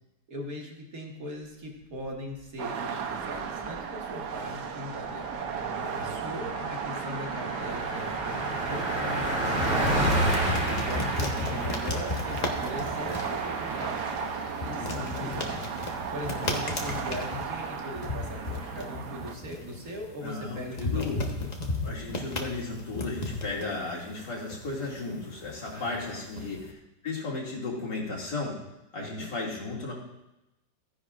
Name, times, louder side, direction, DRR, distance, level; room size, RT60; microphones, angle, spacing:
voice 1, 0.3-5.3 5.7-10.2 10.6-14.0 14.6-15.6 16.1-21.5 25.7-26.6 29.0-29.3, equal, 55° right, 0 dB, 2.1 m, -40 dB
sound 1, 2.6-19.3, right 6 dB, 70° right, 1.4 m, -34 dB
Car passing by, 3.2-3.8 4.1-4.3 4.5-18.8, equal, 5° right, 2.2 m, -33 dB
sound 2, 8.5-26.7, left 3 dB, 30° left, 1.0 m, -36 dB
voice 2, 14.8-15.5 20.2-21.2 21.8-26.7 27.0-28.5 28.9-29.9, left 3 dB, 75° left, -4 dB, 3.1 m, -35 dB
14.5 x 10.0 x 2.5 m, 0.93 s
omnidirectional pair, 1.9 m